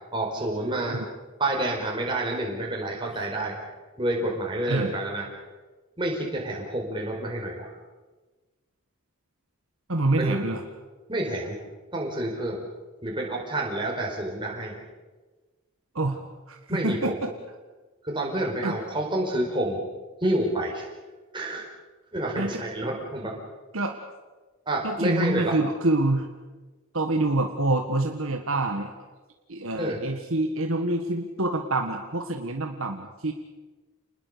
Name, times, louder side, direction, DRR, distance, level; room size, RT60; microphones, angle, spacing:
voice 1, 0.1-1.0 1.4-3.6 4.0-5.2 6.0-7.7 10.2-10.4 11.1-11.6 11.9-12.6 13.0-14.8 16.7-17.2 18.0-19.8 20.2-20.9 21.3-21.6 22.1-23.4 24.7-25.5 29.7-30.0, right 1 dB, 20° right, -1 dB, 4.7 m, -28 dB
voice 2, 9.9-10.6 15.9-16.2 16.5-17.3 18.6-18.7 22.4-22.6 23.7-23.9 24.8-26.3 26.9-28.9 29.5-33.3, right 2 dB, 65° right, 4 dB, 1.6 m, -26 dB
28.5 x 20.5 x 6.8 m, 1.2 s
head